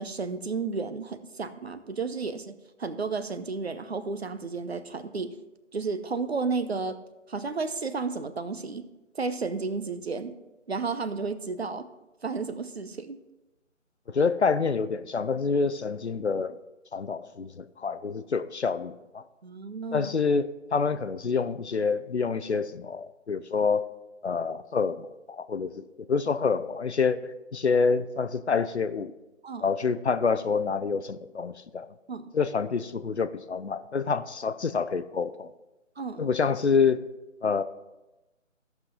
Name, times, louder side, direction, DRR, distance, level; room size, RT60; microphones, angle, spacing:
voice 1, 0.0-5.4 5.7-7.0 7.3-8.9 9.1-10.4 10.7-11.9 12.2-13.2 19.4-20.1 29.4-29.7 32.1-32.3 36.0-36.3, right 4 dB, 55° right, 11 dB, 0.8 m, -32 dB
voice 2, 14.1-16.6 16.9-19.2 19.9-23.9 24.2-29.1 29.6-31.9 32.3-35.5 36.2-37.0 37.4-37.6, left 5 dB, 60° left, 13 dB, 0.6 m, -27 dB
16.0 x 5.9 x 3.7 m, 1.0 s
figure-of-eight pair, 155°, 39 cm